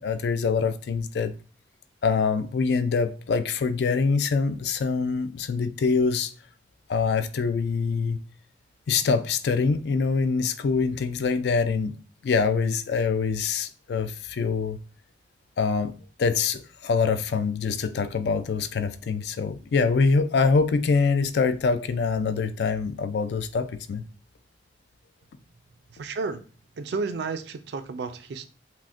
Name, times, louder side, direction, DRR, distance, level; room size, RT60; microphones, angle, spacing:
voice 1, 0.0-1.3 2.0-6.3 6.9-8.2 8.9-11.9 12.2-14.8 15.6-15.9 16.2-24.0, left 5 dB, 70° left, 0.3 m, -24 dB
voice 2, 25.9-26.4 26.8-28.5, right 4 dB, 70° right, 0.4 m, -32 dB
5.8 x 2.1 x 2.5 m
head